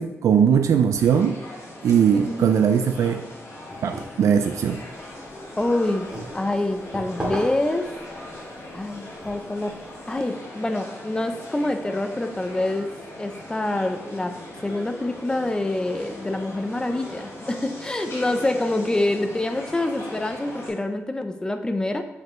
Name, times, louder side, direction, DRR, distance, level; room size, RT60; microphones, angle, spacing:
voice 1, 0.0-1.4 1.8-3.2 3.8-4.8, right 7 dB, 90° right, 7 dB, 0.3 m, -20 dB
sound 1, 0.9-20.7, left 1 dB, 70° left, 2.5 m, -39 dB
voice 2, 2.1-2.5 5.6-6.1 6.3-7.9 8.7-9.8 10.1-12.9 13.2-22.1, left 2 dB, 15° left, 7 dB, 0.5 m, -26 dB
sound 2, 3.7-10.2, right 1 dB, 20° right, 2.1 m, -38 dB
7.8 x 5.3 x 3.0 m, 0.97 s
wide cardioid pair, 135°, 5 cm